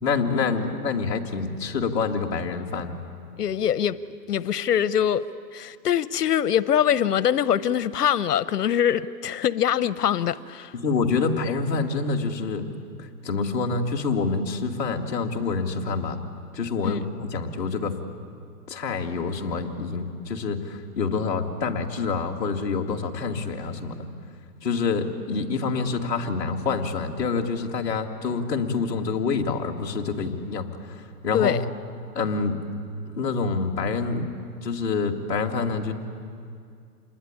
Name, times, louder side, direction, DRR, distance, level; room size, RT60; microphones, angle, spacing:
voice 1, 0.0-3.0 10.7-12.7 13.0-16.2 16.5-17.9 18.7-24.1 24.6-31.5 32.1-32.6 33.1-34.3 34.6-35.9, left 4 dB, 5° left, -7 dB, 1.1 m, -27 dB
voice 2, 3.4-4.0 4.3-5.2 5.5-10.7 16.8-17.0 31.3-31.6, left 9 dB, 70° left, 16 dB, 0.8 m, -23 dB
27.5 x 21.0 x 9.9 m, 2.3 s
hypercardioid pair, 180°, 49 cm